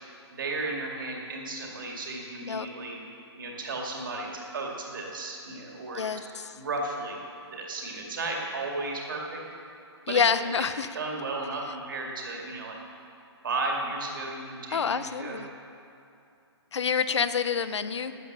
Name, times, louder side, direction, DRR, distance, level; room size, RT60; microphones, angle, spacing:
voice 1, 0.3-3.0 3.4-6.2 6.5-7.2 7.5-9.4 10.1-10.2 10.9-12.8 13.4-15.4, right 2 dB, 45° right, -1 dB, 2.2 m, -34 dB
voice 2, 5.9-6.5 10.1-10.9 14.7-15.5 16.7-18.1, left 6 dB, 80° left, 13 dB, 0.7 m, -27 dB
12.5 x 8.8 x 6.6 m, 2.6 s
hypercardioid pair, 180°, 15 cm